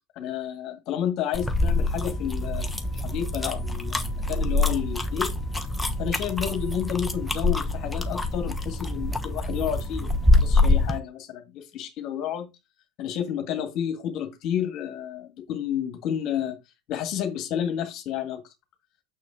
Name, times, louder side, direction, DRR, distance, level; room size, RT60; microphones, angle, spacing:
voice 1, 0.1-2.7 2.9-5.3 6.0-12.5 13.0-16.6 16.9-18.4, left 9 dB, 50° left, 1.7 m, -30 dB
sound 1, 1.3-11.0, left 2 dB, 5° left, 1.2 m, -25 dB
6.4 x 6.2 x 3.6 m
hypercardioid pair, 90°, 0 cm